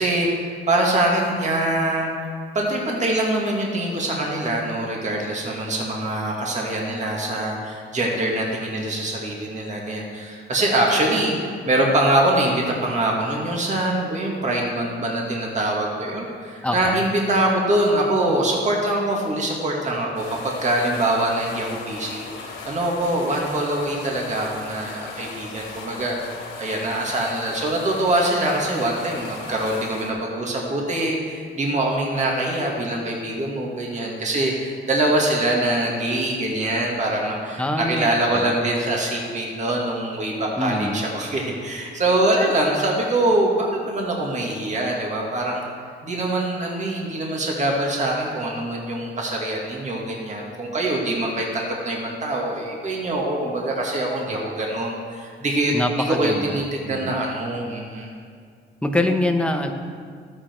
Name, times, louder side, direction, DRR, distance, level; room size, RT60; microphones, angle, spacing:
voice 1, 0.0-2.1 2.5-11.3 11.7-45.6 46.0-55.7 56.1-58.1, right 1 dB, 35° right, -2 dB, 2.1 m, -24 dB
voice 2, 16.6-17.0 37.6-38.7 40.6-41.0 55.7-57.2 58.8-59.7, left 1 dB, 5° left, 4 dB, 1.0 m, -25 dB
sound 1, 20.1-30.1, left 4 dB, 85° left, 2.3 m, -38 dB
13.0 x 8.7 x 4.6 m, 2.1 s
cardioid pair, 90°, 20 cm